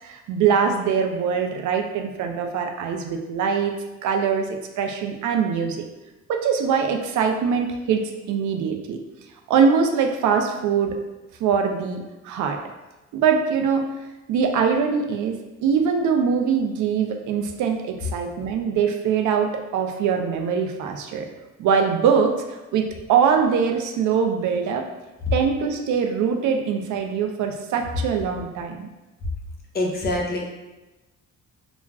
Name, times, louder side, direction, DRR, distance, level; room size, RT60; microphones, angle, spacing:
voice 1, 0.0-3.7 4.0-4.5 4.8-5.8 6.3-9.0 9.5-10.9 11.4-12.6 13.1-13.9 14.3-15.4 15.6-21.3 21.6-24.9 25.3-28.9, right 6 dB, 75° right, 4 dB, 0.4 m, -22 dB
voice 2, 29.7-30.4, left 1 dB, 30° left, 0 dB, 0.6 m, -24 dB
2.3 x 2.1 x 3.4 m, 1.1 s
cardioid pair, 90°, 30 cm